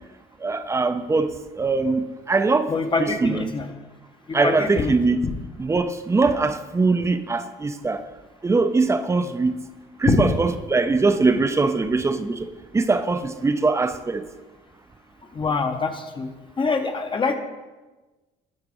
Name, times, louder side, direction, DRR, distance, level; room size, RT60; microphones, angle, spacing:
voice 1, 0.4-2.7 3.0-3.5 4.3-5.2 5.6-8.0 8.4-9.5 10.0-14.3, right 3 dB, 15° right, 10 dB, 0.5 m, -22 dB
voice 2, 2.7-3.7 4.3-5.0 5.2-5.3 10.1-10.2 15.3-16.3 16.6-17.3, left 4 dB, 30° left, 6 dB, 0.7 m, -24 dB
11.0 x 4.0 x 4.9 m, 1.2 s
cardioid pair, 110°, 17 cm